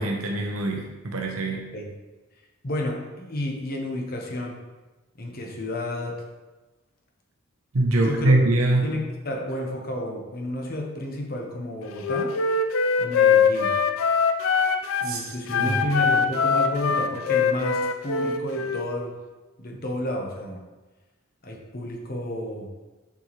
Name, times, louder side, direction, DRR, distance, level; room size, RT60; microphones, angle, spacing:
voice 1, 0.0-1.7 7.7-8.8 15.0-15.8, right 2 dB, 85° right, 1 dB, 0.8 m, -23 dB
voice 2, 2.6-4.6 5.2-6.2 8.0-8.3 8.8-12.3 13.0-13.7 15.0-19.1 19.6-20.6 21.4-22.7, left 1 dB, 45° left, 0 dB, 1.0 m, -31 dB
Wind instrument woodwind instrument, 12.0-15.1 15.5-18.9, left 5 dB, 75° left, 0.5 m, -22 dB
7.1 x 4.6 x 3.1 m, 1.2 s
head